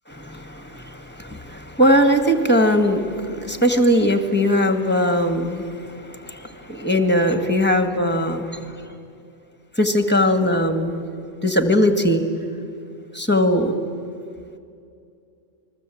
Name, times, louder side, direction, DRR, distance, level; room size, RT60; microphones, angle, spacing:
voice 1, 0.1-8.7 9.8-11.0 11.4-12.2 13.1-13.7, equal, 10° left, 7 dB, 1.9 m, -20 dB
28.5 x 21.0 x 8.6 m, 2.4 s
omnidirectional pair, 1.2 m